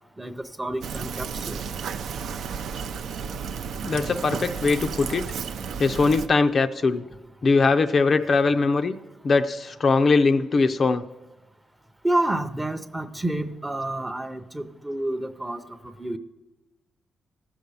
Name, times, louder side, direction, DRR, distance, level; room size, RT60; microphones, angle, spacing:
voice 1, 0.2-1.6 12.0-15.6 16.0-16.2, right 1 dB, 10° right, 10 dB, 0.6 m, -29 dB
Fill (with liquid), 0.8-6.3, right 6 dB, 70° right, 0.5 m, -33 dB
voice 2, 3.8-5.3 5.8-7.0 7.4-9.0 9.2-11.0, left 4 dB, 40° left, 9 dB, 0.4 m, -21 dB
14.0 x 6.6 x 7.0 m, 1.1 s
cardioid pair, 125°, 0 cm